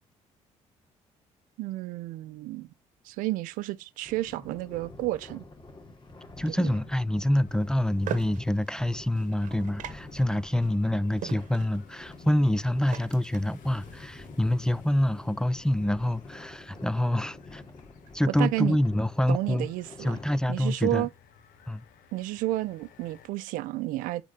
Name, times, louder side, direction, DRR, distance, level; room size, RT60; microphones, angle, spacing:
voice 1, 1.6-2.7 3.0-5.4 6.5-6.8 18.3-18.8 19.3-20.2 20.5-21.1 22.1-24.2, right 17 dB, 85° right, 0.6 m, -31 dB
sound 1, 4.0-20.5, left 2 dB, 35° left, 2.5 m, -48 dB
voice 2, 6.4-17.6 18.1-19.7 20.0-21.1 21.7-21.8, left 1 dB, 5° left, 0.5 m, -26 dB
sound 2, 6.8-23.3, left 8 dB, 80° left, 1.5 m, -57 dB
sound 3, 7.5-14.3, right 10 dB, 70° right, 1.0 m, -42 dB
8.4 x 4.0 x 3.4 m
supercardioid pair, 80°, 14 cm